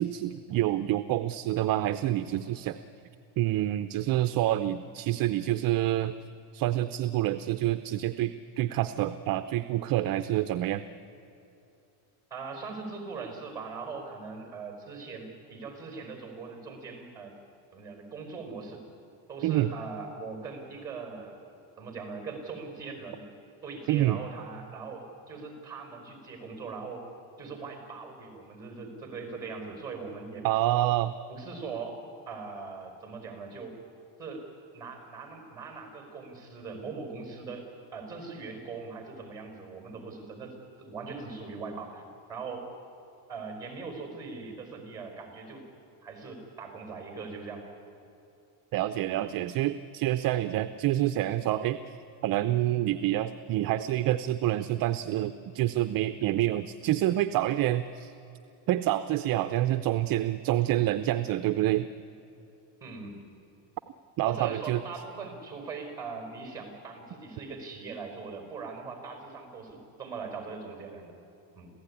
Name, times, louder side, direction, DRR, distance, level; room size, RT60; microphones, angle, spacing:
voice 1, 0.0-2.8 3.4-6.2 6.5-10.8 19.4-19.7 23.9-24.2 30.4-31.1 48.7-51.8 52.2-58.1 58.7-61.9 64.2-64.8, right 14 dB, 45° right, 10 dB, 0.6 m, -27 dB
voice 2, 12.3-17.3 17.7-18.8 19.3-21.4 21.8-23.3 23.6-27.1 27.4-30.5 31.3-32.0 32.3-33.8 34.2-34.5 34.7-37.7 37.9-42.0 42.3-42.7 43.3-45.6 46.0-47.7 49.1-49.3 62.8-63.2 64.2-71.1 71.5-71.7, right 4 dB, 5° right, 3 dB, 4.9 m, -40 dB
27.0 x 16.0 x 9.9 m, 2.8 s
cardioid pair, 175°, 50 cm